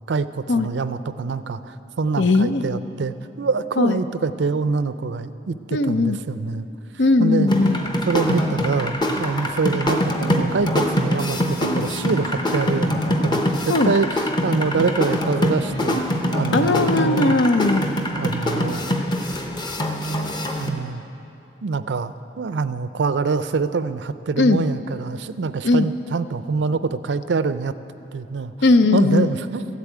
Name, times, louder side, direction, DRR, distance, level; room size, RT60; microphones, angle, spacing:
voice 1, 0.1-6.7 7.2-7.5 8.0-17.4 18.1-18.8 20.6-21.0 21.6-27.7 28.1-28.5 28.9-29.7, right 4 dB, 80° right, 13 dB, 0.5 m, -25 dB
voice 2, 2.2-2.6 3.8-4.0 5.7-6.2 7.0-7.8 13.7-13.9 16.5-17.9 24.4-24.6 25.6-25.9 28.6-29.3, left 2 dB, 80° left, 10 dB, 0.6 m, -18 dB
sound 1, 7.5-20.7, left 1 dB, 25° left, 0.8 m, -24 dB
14.0 x 8.3 x 9.1 m, 2.9 s
head